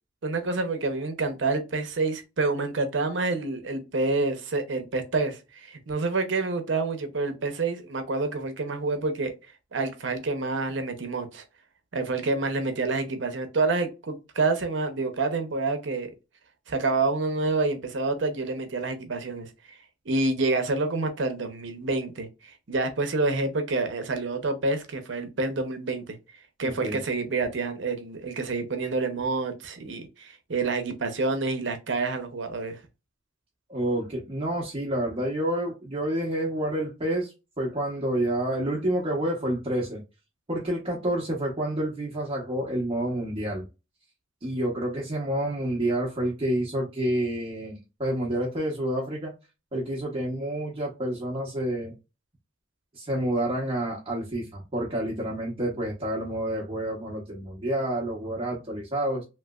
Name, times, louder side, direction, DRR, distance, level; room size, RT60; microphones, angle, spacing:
voice 1, 0.2-9.3 9.7-11.4 11.9-16.1 16.7-19.8 20.1-26.2 26.6-32.8, right 3 dB, 75° right, 0.7 m, -28 dB
voice 2, 26.6-27.0 33.7-40.0 40.5-43.6 44.4-49.3 49.7-51.9 52.9-59.2, right 1 dB, 30° right, 0.9 m, -29 dB
3.1 x 3.0 x 2.3 m
head